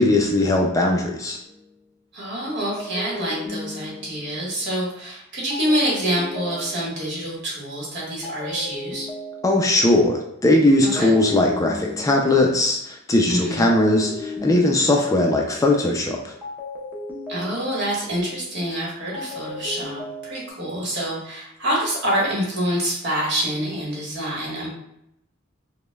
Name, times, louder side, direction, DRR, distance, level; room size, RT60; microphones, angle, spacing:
voice 1, 0.0-1.4 9.4-16.3, left 2 dB, 15° left, 1 dB, 0.3 m, -19 dB
sound 1, 1.4-1.7 2.8-4.5 5.5-7.2 8.2-9.9 11.0-12.6 13.7-15.4 16.4-18.1 19.1-20.5, left 1 dB, 10° right, 0.7 m, -35 dB
voice 2, 2.1-9.1 10.8-11.1 13.3-13.7 17.3-24.7, equal, 60° right, -4 dB, 1.4 m, -26 dB
5.0 x 2.1 x 2.2 m, 0.78 s
head